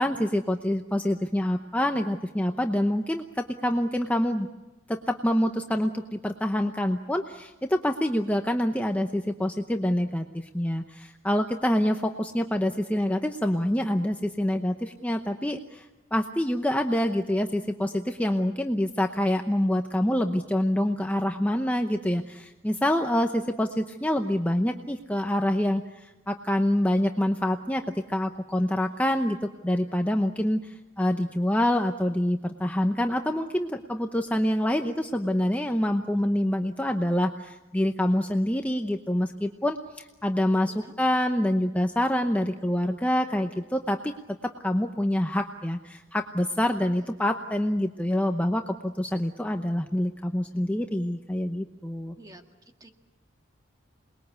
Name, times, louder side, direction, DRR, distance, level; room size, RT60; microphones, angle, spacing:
voice 1, 0.0-4.5 4.9-44.1 44.4-52.1, left 1 dB, 5° left, 4 dB, 0.8 m, -26 dB
voice 2, 40.6-40.9 46.9-47.1 52.1-52.4 52.8-52.9, right 1 dB, 20° right, 5 dB, 1.8 m, -50 dB
28.0 x 21.0 x 8.2 m, 1.1 s
head